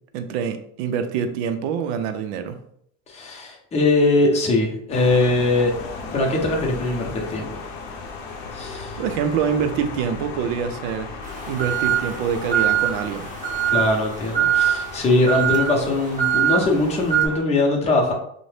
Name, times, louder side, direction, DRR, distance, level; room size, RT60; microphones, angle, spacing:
voice 1, 0.1-2.6 9.0-11.2 11.5-13.3, right 7 dB, 75° right, 8 dB, 0.5 m, -25 dB
voice 2, 3.1-7.6 8.5-9.0 13.7-18.1, left 2 dB, 20° left, -1 dB, 0.7 m, -21 dB
sound 1, 4.9-17.4, left 4 dB, 55° left, 0.6 m, -36 dB
sound 2, 11.2-17.3, right 10 dB, 25° right, 0.5 m, -23 dB
2.6 x 2.1 x 3.2 m, 0.69 s
supercardioid pair, 125°, 34 cm